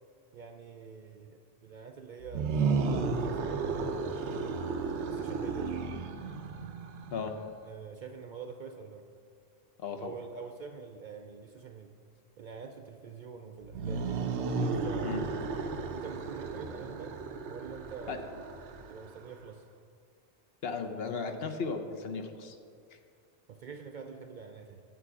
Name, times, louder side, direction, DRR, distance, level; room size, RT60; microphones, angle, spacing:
voice 1, 0.3-3.9 5.1-5.9 7.6-9.1 10.0-11.9 12.4-14.1 14.5-15.3 15.9-17.2 17.5-18.5 18.9-19.6 23.5-24.8, right 5 dB, 60° right, 5 dB, 0.5 m, -46 dB
sound 1, 2.2-7.4 13.6-19.3, right 4 dB, 80° right, 1.0 m, -33 dB
voice 2, 9.8-10.1 15.0-15.2 18.1-18.2 20.6-22.6, left 5 dB, 65° left, 5 dB, 0.9 m, -35 dB
9.3 x 7.3 x 4.8 m, 2.3 s
omnidirectional pair, 1.2 m